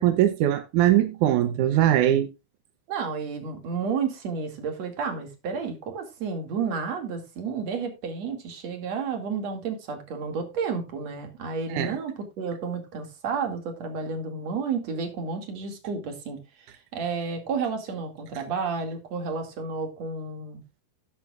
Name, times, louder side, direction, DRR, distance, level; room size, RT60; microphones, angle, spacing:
voice 1, 0.0-2.3 11.7-11.9, right 12 dB, 75° right, 1.8 m, -21 dB
voice 2, 2.9-20.6, right 5 dB, 45° right, 3.2 m, -31 dB
13.5 x 9.6 x 2.4 m
omnidirectional pair, 4.6 m